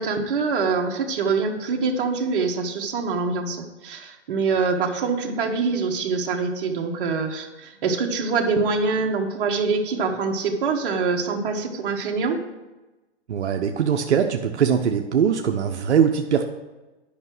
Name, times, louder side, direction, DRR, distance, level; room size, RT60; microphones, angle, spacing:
voice 1, 0.0-12.4, right 4 dB, 50° right, 2 dB, 1.6 m, -24 dB
voice 2, 13.3-16.4, right 7 dB, 85° right, 4 dB, 0.9 m, -21 dB
10.5 x 5.9 x 6.1 m, 1.1 s
hypercardioid pair, 145°, 33 cm